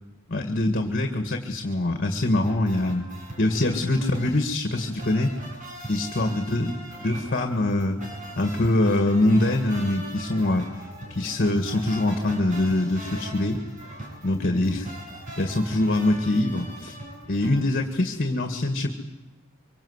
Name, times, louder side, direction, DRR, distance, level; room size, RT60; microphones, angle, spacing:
voice 1, 0.3-3.1 3.4-5.3 5.9-8.0 8.4-10.6 11.1-13.6 14.2-14.9 15.4-17.0 17.3-18.9, left 1 dB, 45° left, 6 dB, 2.0 m, -24 dB
sound 1, 2.4-17.6, right 1 dB, 40° right, 7.1 m, -40 dB
24.5 x 24.5 x 8.2 m, 1.1 s
head